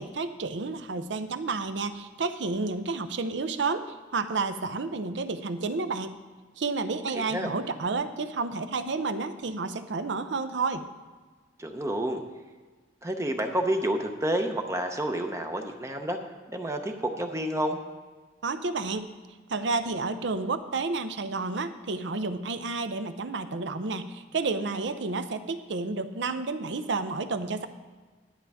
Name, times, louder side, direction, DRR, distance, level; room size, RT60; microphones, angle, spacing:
voice 1, 0.0-3.8 4.1-6.2 6.6-10.9 18.4-19.1 19.5-27.7, right 3 dB, 70° right, 10 dB, 0.6 m, -30 dB
voice 2, 11.6-12.2 13.0-16.2 16.5-17.8, right 1 dB, 15° right, 4 dB, 0.6 m, -29 dB
11.0 x 10.0 x 3.5 m, 1.4 s
head